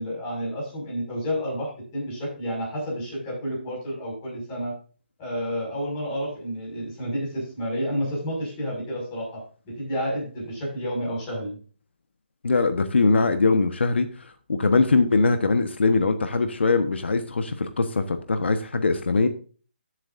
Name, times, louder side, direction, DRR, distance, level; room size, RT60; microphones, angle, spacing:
voice 1, 0.0-4.7 5.2-11.6, equal, 15° left, -4 dB, 5.6 m, -30 dB
voice 2, 12.4-14.1 14.5-19.3, left 3 dB, 75° left, 8 dB, 1.2 m, -21 dB
14.0 x 8.0 x 2.6 m, 0.39 s
hypercardioid pair, 175°, 6 cm